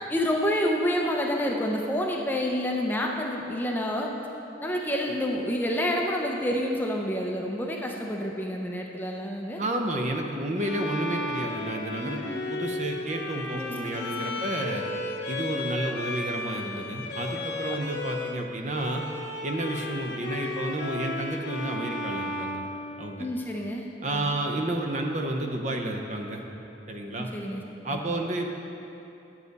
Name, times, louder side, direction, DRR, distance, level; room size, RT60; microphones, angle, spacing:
voice 1, 0.1-4.1 4.6-9.6 12.0-12.5 13.5-14.4 23.2-24.3 27.2-28.2, equal, 10° left, 0 dB, 0.5 m, -29 dB
voice 2, 9.6-12.2 12.5-14.8 15.3-19.0 19.4-22.6 23.0-23.3 24.0-26.4 26.9-27.3 27.8-28.5, right 1 dB, 40° right, 3 dB, 0.6 m, -31 dB
Bowed string instrument, 10.6-18.4 18.7-23.5, left 2 dB, 65° left, 0.6 m, -34 dB
9.4 x 7.3 x 4.0 m, 3.0 s
head